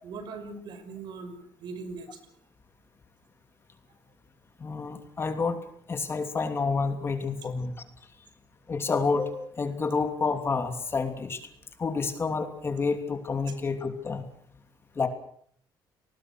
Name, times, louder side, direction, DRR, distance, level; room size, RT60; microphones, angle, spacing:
voice 1, 0.0-2.2, right 4 dB, 60° right, 9 dB, 5.7 m, -40 dB
voice 2, 4.6-5.6 5.9-7.7 8.7-11.4 11.8-14.2 15.0-15.1, left 4 dB, 30° left, 8 dB, 3.0 m, -29 dB
29.5 x 20.0 x 6.4 m, 0.63 s
cardioid pair, 115°, 8 cm